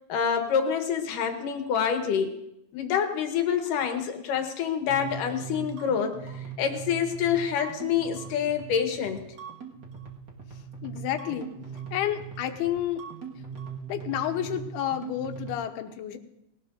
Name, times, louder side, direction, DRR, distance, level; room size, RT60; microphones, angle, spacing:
voice 1, 0.1-2.3 2.7-6.2 6.6-9.2, left 7 dB, 65° left, 5 dB, 2.5 m, -27 dB
sound 1, 4.9-15.5, right 7 dB, 55° right, 1.2 m, -40 dB
voice 2, 10.8-11.5 11.9-13.1 13.9-16.2, left 11 dB, 85° left, 7 dB, 2.8 m, -30 dB
20.0 x 18.0 x 2.6 m, 0.82 s
omnidirectional pair, 4.6 m